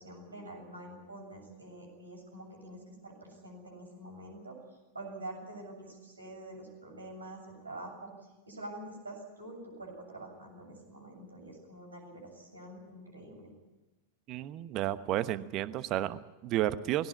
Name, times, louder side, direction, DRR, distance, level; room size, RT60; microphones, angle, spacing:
voice 1, 0.0-4.6 4.9-8.1 8.5-13.5, right 1 dB, 80° right, 2 dB, 7.5 m, -46 dB
voice 2, 14.3-17.1, right 13 dB, 35° right, 14 dB, 1.1 m, -32 dB
20.5 x 17.5 x 10.0 m, 1.1 s
figure-of-eight pair, 90°, 0 cm